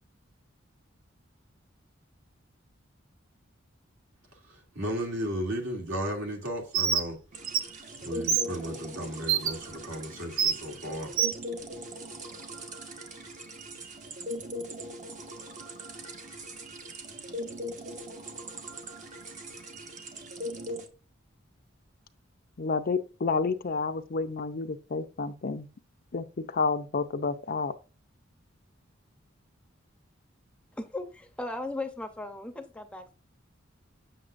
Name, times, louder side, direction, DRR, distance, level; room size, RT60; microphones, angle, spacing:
voice 1, 4.5-7.2 8.0-11.1, equal, 70° right, 2.6 m, -34 dB
Bird, 6.7-7.0 7.5-7.6 8.3-8.4 9.3-9.5 10.4-10.5 11.2-11.3, right 7 dB, 85° right, 0.9 m, -24 dB
sound 1, 7.3-20.9, equal, 40° right, 1.2 m, -40 dB
voice 2, 22.6-25.7 26.1-27.7, left 4 dB, 50° left, 0.6 m, -30 dB
voice 3, 30.8-33.1, left 2 dB, 5° left, 0.8 m, -37 dB
7.7 x 6.5 x 2.5 m
head